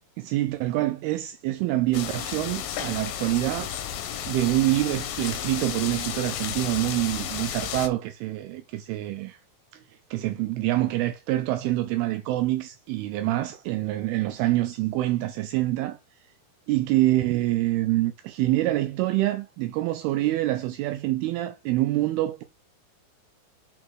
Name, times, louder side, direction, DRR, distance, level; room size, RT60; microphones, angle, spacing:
voice 1, 0.2-3.7 4.3-9.4 10.1-16.0 16.7-22.4, right 16 dB, 85° right, 2.4 m, -26 dB
sound 1, 1.9-7.9, left 9 dB, 75° left, 2.5 m, -33 dB
5.8 x 3.8 x 4.7 m
omnidirectional pair, 4.5 m